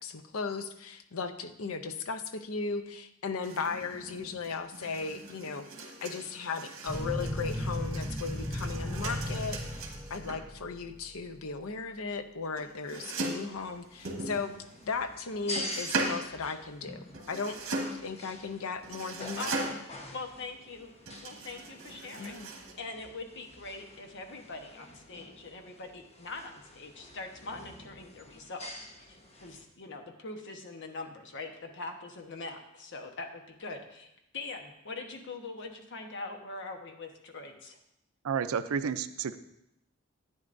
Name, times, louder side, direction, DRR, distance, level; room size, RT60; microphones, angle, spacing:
voice 1, 0.0-14.5 14.9-17.6 17.9-19.6 22.2-22.5, left 4 dB, 80° left, 10 dB, 0.6 m, -36 dB
sound 1, 3.4-10.5 12.6-13.5 14.0-14.9 15.6-16.2 17.1-18.1 18.8-20.0 21.1-22.7, right 2 dB, 70° right, 1.5 m, -39 dB
sound 2, 6.9-11.0, left 1 dB, ahead, 0.7 m, -35 dB
sound 3, 13.5-29.6, left 1 dB, 30° left, 1.1 m, -47 dB
voice 2, 19.4-19.7 20.1-20.9 21.2-22.3 22.8-37.8, left 3 dB, 60° left, 4 dB, 1.1 m, -42 dB
voice 3, 38.2-39.4, right 6 dB, 90° right, 13 dB, 0.4 m, -31 dB
11.0 x 9.1 x 2.6 m, 0.83 s
head